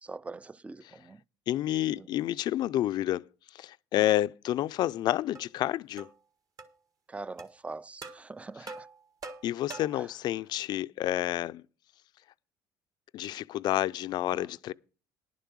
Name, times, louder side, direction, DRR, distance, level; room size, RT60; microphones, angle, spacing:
voice 1, 0.0-1.2 2.0-2.1 7.1-8.9 9.9-10.1 14.3-14.5, right 3 dB, 15° right, 0.4 m, -43 dB
voice 2, 1.5-3.2 3.5-6.1 9.4-11.6 13.1-14.7, left 13 dB, 60° left, 0.4 m, -29 dB
sound 1, 5.4-5.5 6.0-6.2 6.6-6.7 7.4-7.5 8.0-8.2 8.7-10.1, right 3 dB, 45° right, 1.7 m, -44 dB
11.0 x 6.8 x 6.2 m
supercardioid pair, 85°, 8 cm